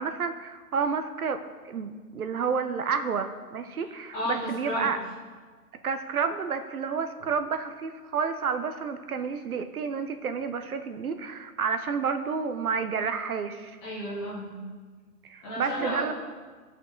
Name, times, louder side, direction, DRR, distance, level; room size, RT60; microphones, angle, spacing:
voice 1, 0.0-1.4 1.7-5.0 5.8-13.8 15.3-16.1, right 6 dB, 65° right, 9 dB, 0.7 m, -30 dB
voice 2, 4.1-4.9 13.8-14.6 15.4-16.1, left 1 dB, 5° left, -9 dB, 0.8 m, -32 dB
13.5 x 5.4 x 3.8 m, 1.5 s
hypercardioid pair, 160°, 48 cm